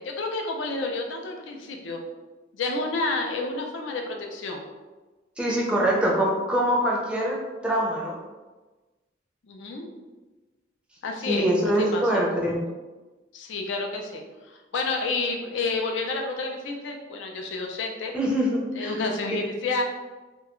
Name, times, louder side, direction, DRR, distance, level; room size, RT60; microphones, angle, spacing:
voice 1, 0.0-2.0 2.5-4.6 9.5-9.9 11.0-11.5 11.9-12.2 13.3-18.1 18.7-19.8, left 3 dB, 75° left, 2 dB, 0.4 m, -30 dB
voice 2, 5.4-8.1 11.3-12.6 18.1-19.0, right 1 dB, 5° right, -4 dB, 0.4 m, -24 dB
2.3 x 2.1 x 2.9 m, 1.2 s
head